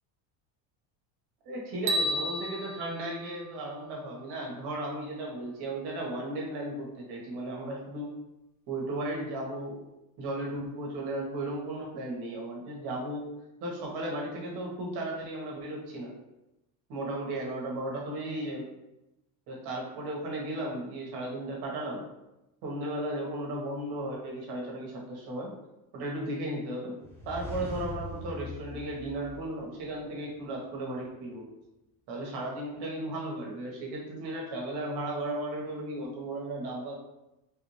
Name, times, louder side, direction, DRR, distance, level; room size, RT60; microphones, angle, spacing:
voice 1, 1.4-8.2 8.7-9.8 10.2-13.3 13.6-16.1 16.9-18.7 19.5-22.1 22.6-25.5 25.9-27.0 27.2-31.5 32.1-36.9, right 1 dB, 60° right, -2 dB, 1.3 m, -35 dB
sound 1, 1.9-4.1, right 1 dB, 45° right, 0.4 m, -33 dB
sound 2, 27.0-30.0, equal, 5° left, 0.6 m, -41 dB
3.5 x 2.6 x 3.1 m, 0.93 s
cardioid pair, 135°, 44 cm